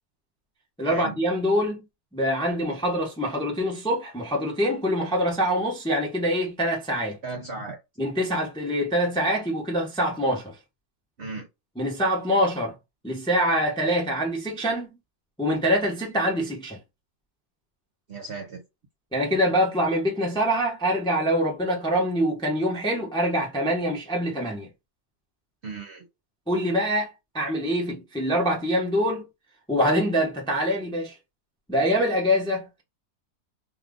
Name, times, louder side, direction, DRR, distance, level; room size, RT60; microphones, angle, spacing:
voice 1, 0.8-1.8 2.1-7.2 8.0-10.5 11.8-12.7 13.0-14.9 15.4-16.8 19.1-24.7 26.5-27.1 27.3-29.3 29.7-31.2 31.7-32.8, equal, 5° left, 0.6 m, -24 dB
voice 2, 7.2-7.8 11.2-11.5 18.1-18.6 25.6-26.1, right 3 dB, 50° right, 0.8 m, -35 dB
2.8 x 2.4 x 3.6 m
omnidirectional pair, 1.8 m